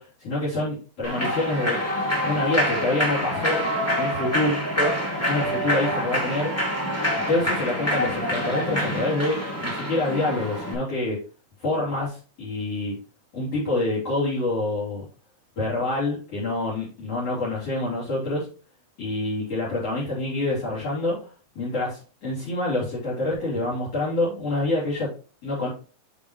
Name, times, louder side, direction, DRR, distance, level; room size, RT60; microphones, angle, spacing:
voice 1, 0.0-1.8 2.2-3.6 4.0-4.9 5.3-6.5 7.3-11.2 11.6-13.0 13.3-15.0 15.6-18.5 19.0-21.3 21.6-25.1 25.4-25.7, left 2 dB, 45° left, -7 dB, 4.0 m, -26 dB
Human voice / Clapping / Cheering, 1.0-10.7, equal, 5° left, 1.6 m, -26 dB
8.1 x 5.5 x 3.1 m, 0.36 s
omnidirectional pair, 4.0 m